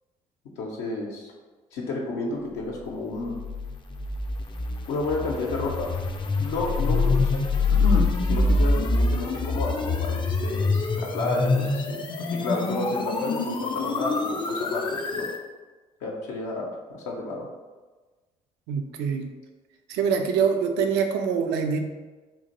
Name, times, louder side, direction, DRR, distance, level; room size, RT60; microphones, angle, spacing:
voice 1, 0.6-1.3 1.7-3.4 4.9-5.9 6.4-7.4 7.7-12.0 12.3-15.3 16.0-17.5, left 2 dB, 70° left, -3 dB, 0.6 m, -31 dB
sound 1, 3.3-15.4, left 3 dB, 25° left, 0.4 m, -25 dB
voice 2, 18.7-19.3 19.9-21.8, right 6 dB, 65° right, 5 dB, 0.4 m, -24 dB
3.7 x 2.5 x 2.8 m, 1.3 s
hypercardioid pair, 50°, 19 cm